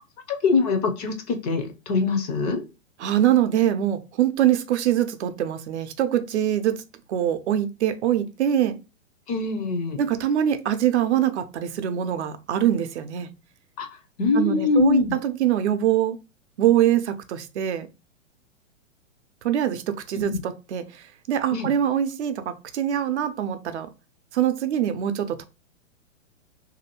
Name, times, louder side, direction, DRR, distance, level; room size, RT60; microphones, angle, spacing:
voice 1, 0.3-2.6 9.3-10.0 13.8-15.2 20.1-20.4 21.5-21.7, left 4 dB, 30° left, 0.5 m, -24 dB
voice 2, 3.0-6.8 7.1-8.8 10.0-13.3 14.4-16.2 16.6-17.9 19.4-23.9 24.3-25.4, right 10 dB, 60° right, 0.6 m, -23 dB
2.7 x 2.5 x 2.8 m
hypercardioid pair, 135°, 39 cm